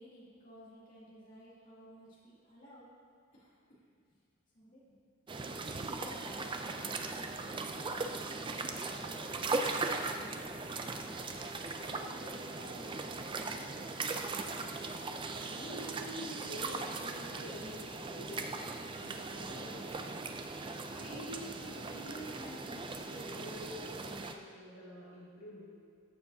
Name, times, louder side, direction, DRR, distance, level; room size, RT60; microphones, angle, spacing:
voice 1, 0.0-2.9 3.3-4.2 4.5-5.0 5.3-7.3 7.6-11.2 11.8-13.7, equal, 40° left, -8 dB, 2.5 m, -55 dB
sound 1, 5.3-24.3, right 3 dB, 25° right, 0.4 m, -39 dB
voice 2, 15.5-17.9 18.2-18.6 19.0-19.8 20.8-25.7, equal, 65° left, -8 dB, 2.0 m, -47 dB
14.0 x 7.1 x 2.8 m, 2.3 s
head